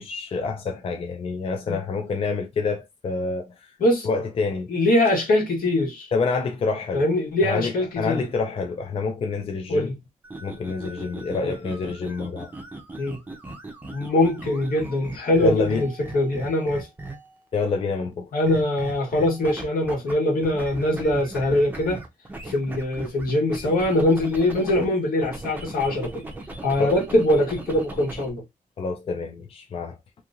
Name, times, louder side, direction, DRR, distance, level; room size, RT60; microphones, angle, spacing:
voice 1, 0.0-3.7 4.0-4.7 6.1-7.0 7.4-9.9 10.4-12.5 15.4-15.8 17.5-18.3 26.8-26.9 28.8-30.0, left 4 dB, 40° left, 0.4 m, -27 dB
voice 2, 4.7-6.1 6.9-8.3 9.7-9.9 11.4-11.5 13.0-13.2 13.9-16.9 18.3-22.0 22.4-26.2 26.6-28.4, left 1 dB, 80° left, 1.4 m, -22 dB
sound 1, 10.2-17.4 18.4-20.1 20.4-24.9 25.2-28.3, right 2 dB, 10° right, 0.6 m, -38 dB
3.0 x 2.7 x 2.5 m
wide cardioid pair, 165°, 15 cm